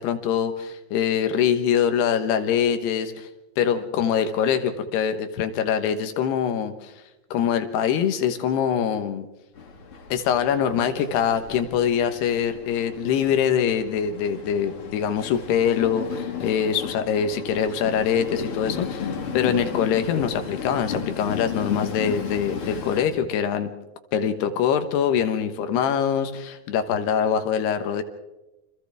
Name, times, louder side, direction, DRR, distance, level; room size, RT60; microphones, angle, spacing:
voice 1, 0.0-3.3 3.6-6.9 7.3-9.2 10.1-23.7 24.1-28.0, left 8 dB, 85° left, 8 dB, 3.3 m, -24 dB
Train, 9.6-23.0, left 6 dB, 45° left, 2.1 m, -34 dB
29.0 x 25.5 x 3.5 m, 1.0 s
omnidirectional pair, 4.6 m